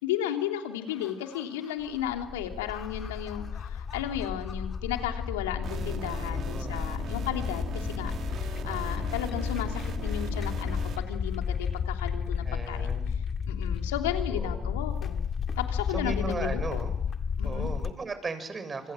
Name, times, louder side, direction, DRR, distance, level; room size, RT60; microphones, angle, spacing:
voice 1, 0.0-8.1 8.4-12.9 13.5-16.8 17.4-17.7, left 10 dB, 90° left, 4 dB, 3.0 m, -34 dB
sound 1, 0.9-17.9, left 6 dB, 45° left, 2.0 m, -32 dB
sound 2, 5.6-11.0, right 7 dB, 60° right, 2.8 m, -39 dB
voice 2, 6.3-6.8 12.4-13.2 14.3-14.7 15.9-16.9 17.4-18.9, right 4 dB, 35° right, 11 dB, 6.6 m, -37 dB
28.5 x 26.5 x 7.7 m, 0.79 s
hypercardioid pair, 60°, 0 cm